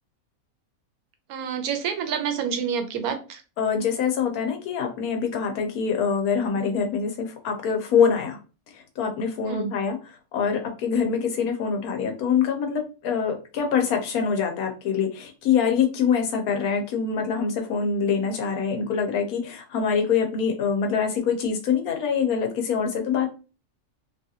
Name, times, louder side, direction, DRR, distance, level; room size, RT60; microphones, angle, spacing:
voice 1, 1.3-3.4 9.4-9.7 11.4-11.5, right 7 dB, 85° right, 7 dB, 1.1 m, -28 dB
voice 2, 3.6-8.4 8.7-23.3, left 6 dB, 85° left, 3 dB, 1.2 m, -25 dB
2.9 x 2.4 x 2.7 m, 0.33 s
omnidirectional pair, 1.5 m